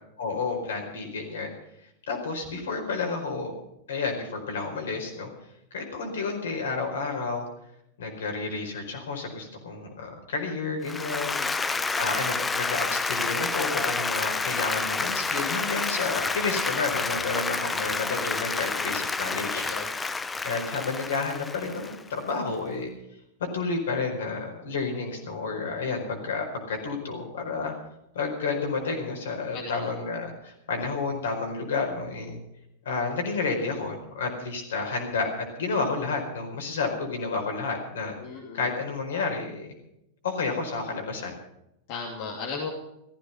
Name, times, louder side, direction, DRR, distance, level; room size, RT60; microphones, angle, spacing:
voice 1, 0.2-1.5 2.1-3.5 3.9-5.3 5.7-7.4 8.0-11.4 11.7-19.6 20.4-22.9 23.5-27.7 28.1-32.4 32.8-35.3 35.6-38.1 38.5-39.7 40.2-41.3, left 4 dB, 65° left, 3 dB, 4.7 m, -30 dB
Applause, 10.8-22.2, left 4 dB, 15° left, 0.8 m, -29 dB
voice 2, 11.2-11.9 18.8-19.0 19.3-19.9 29.5-29.9 38.2-38.6 41.9-42.7, left 4 dB, 50° left, -1 dB, 2.8 m, -37 dB
15.0 x 15.0 x 5.7 m, 0.81 s
figure-of-eight pair, 90°, 0 cm